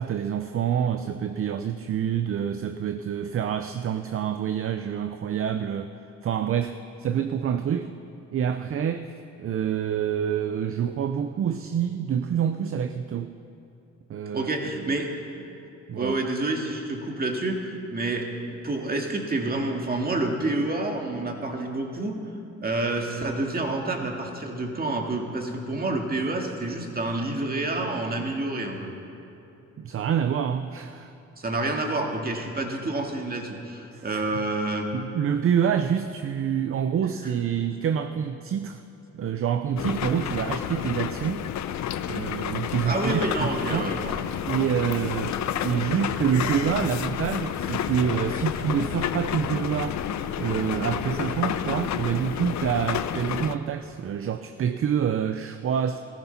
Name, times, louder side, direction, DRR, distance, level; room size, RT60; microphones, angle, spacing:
voice 1, 0.0-5.9 6.2-7.9 8.3-9.1 9.4-13.3 14.1-14.5 14.8-15.0 15.9-16.2 29.8-31.1 33.9-34.2 34.9-38.8 39.1-41.5 42.1-43.9 44.5-45.4 45.6-50.0 50.4-56.0, right 8 dB, 45° right, 9 dB, 0.6 m, -27 dB
voice 2, 14.3-15.1 15.4-15.5 15.9-22.2 22.6-28.9 31.4-34.9 42.8-44.7, right 2 dB, 30° right, 2 dB, 2.2 m, -28 dB
sound 1, 39.8-53.6, left 9 dB, 65° left, 0.7 m, -30 dB
15.5 x 14.0 x 5.8 m, 2.9 s
cardioid pair, 90°, 30 cm